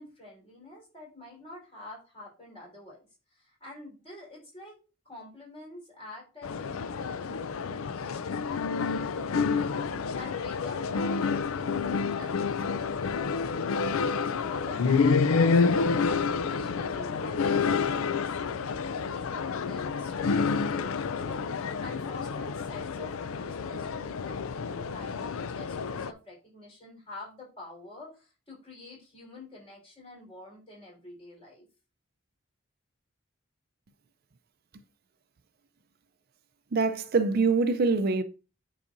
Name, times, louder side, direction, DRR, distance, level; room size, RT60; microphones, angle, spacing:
voice 1, 0.0-3.1 3.3-4.8 5.0-13.4 13.9-31.7, left 2 dB, 30° left, 4.3 m, -47 dB
sound 1, 6.4-26.1, left 5 dB, 85° left, 0.4 m, -29 dB
voice 2, 36.7-38.2, right 4 dB, 50° right, 0.5 m, -24 dB
9.8 x 4.9 x 2.6 m
head